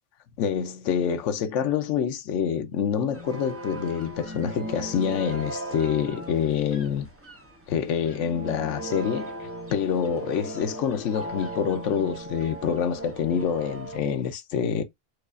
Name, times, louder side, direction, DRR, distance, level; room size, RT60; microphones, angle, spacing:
voice 1, 0.4-7.1 7.7-9.3 9.7-14.8, left 8 dB, 75° left, 1.0 m, -26 dB
sound 1, 3.1-14.0, right 2 dB, 15° right, 0.5 m, -38 dB
4.7 x 2.4 x 2.4 m
omnidirectional pair, 1.3 m